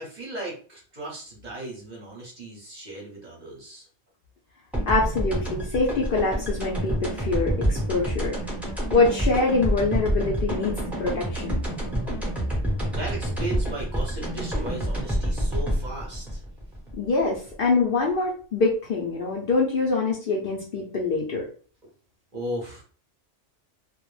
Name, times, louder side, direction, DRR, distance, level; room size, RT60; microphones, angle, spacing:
voice 1, 0.0-3.9 12.9-16.4 22.3-22.8, right 1 dB, 45° right, -3 dB, 0.8 m, -36 dB
sound 1, 4.7-17.5, right 1 dB, ahead, 0.6 m, -28 dB
voice 2, 4.9-8.4 8.9-11.6 17.0-21.5, left 3 dB, 60° left, -2 dB, 0.6 m, -24 dB
2.2 x 2.0 x 3.0 m, 0.40 s
omnidirectional pair, 1.2 m